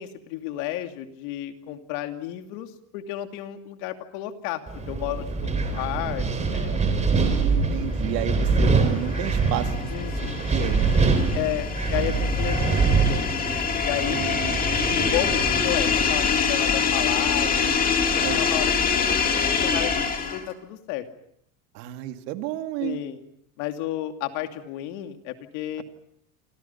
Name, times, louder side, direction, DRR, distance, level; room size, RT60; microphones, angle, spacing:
voice 1, 0.0-7.1 9.9-10.5 11.3-13.3 13.8-14.4 15.0-21.1 22.8-23.2 23.6-25.8, left 13 dB, 60° left, 6 dB, 2.8 m, -32 dB
Wind, 4.7-16.2, right 4 dB, 15° right, 3.6 m, -24 dB
voice 2, 7.1-9.9 10.5-11.2 14.1-14.6 18.2-18.4 21.7-23.0, right 14 dB, 80° right, 7 dB, 2.4 m, -32 dB
sound 1, 8.6-20.5, left 6 dB, 20° left, 2.5 m, -25 dB
28.5 x 27.5 x 5.8 m, 0.69 s
cardioid pair, 175°, 48 cm